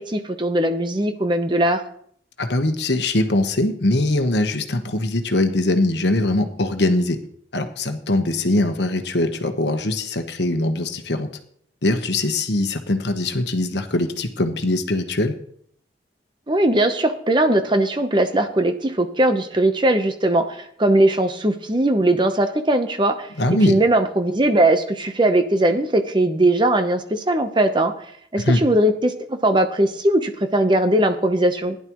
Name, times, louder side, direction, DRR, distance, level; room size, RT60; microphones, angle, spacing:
voice 1, 0.0-1.8 16.5-27.9 28.3-31.8, right 1 dB, 25° right, 7 dB, 0.9 m, -19 dB
voice 2, 2.4-7.2 7.5-11.3 11.8-15.3 23.4-23.8 28.4-28.6, left 2 dB, 70° left, 6 dB, 1.2 m, -21 dB
16.0 x 10.5 x 3.1 m, 0.64 s
head